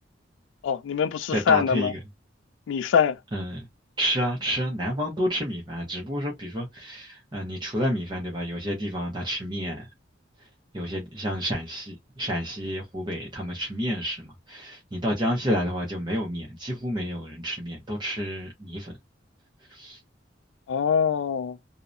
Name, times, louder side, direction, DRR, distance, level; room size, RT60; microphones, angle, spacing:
voice 1, 0.6-1.9 2.7-3.2 20.7-21.6, left 7 dB, 75° left, 0.3 m, -23 dB
voice 2, 1.3-2.0 3.3-3.7 4.0-9.9 10.7-19.0 19.7-20.0, equal, 25° right, 0.6 m, -30 dB
2.6 x 2.1 x 2.4 m
head